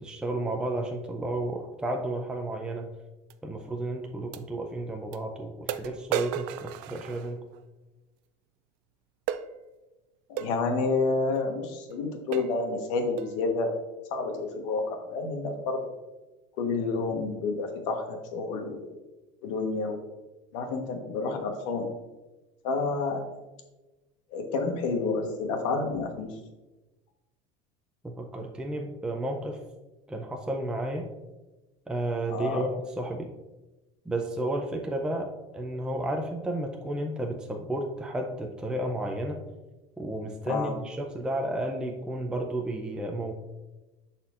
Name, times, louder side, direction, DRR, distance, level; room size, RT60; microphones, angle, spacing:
voice 1, 0.0-2.9 3.4-7.4 28.0-29.6 30.1-31.1 31.9-33.3 34.1-39.4 40.0-43.3, right 1 dB, 5° right, 2 dB, 0.5 m, -32 dB
sound 1, 3.3-3.4 4.3-4.4 5.1-5.2 5.7-7.6 9.3-9.5 10.4-10.6 11.3-11.5 11.9-12.0 12.3-12.6 13.2-13.4, right 10 dB, 65° right, 0.4 m, -34 dB
voice 2, 10.3-13.8 14.1-15.8 16.6-18.8 19.4-20.0 20.5-21.9 22.6-23.2 24.3-26.3 32.3-32.6 40.5-40.7, left 3 dB, 85° left, 4 dB, 1.3 m, -29 dB
11.0 x 4.3 x 2.5 m, 1.1 s
cardioid pair, 140°, 16 cm